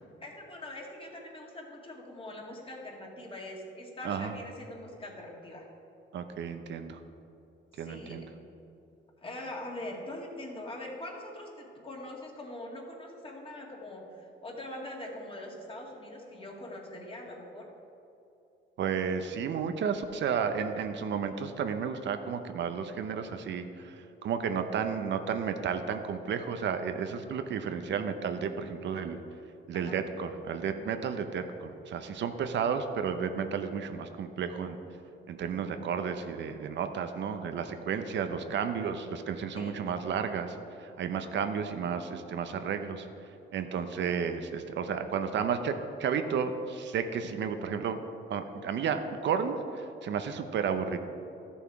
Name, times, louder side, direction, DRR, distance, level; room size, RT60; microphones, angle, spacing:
voice 1, 0.2-5.7 7.7-8.3 9.2-17.7 29.7-30.0 39.6-39.8, left 1 dB, 25° left, -1 dB, 2.1 m, -43 dB
voice 2, 4.0-4.3 6.1-7.0 7.8-8.3 18.8-29.2 29.7-34.8 35.3-43.1 43.5-48.0 48.3-51.0, right 6 dB, 65° right, 8 dB, 0.7 m, -32 dB
13.0 x 7.1 x 4.8 m, 2.8 s
cardioid pair, 90°, 20 cm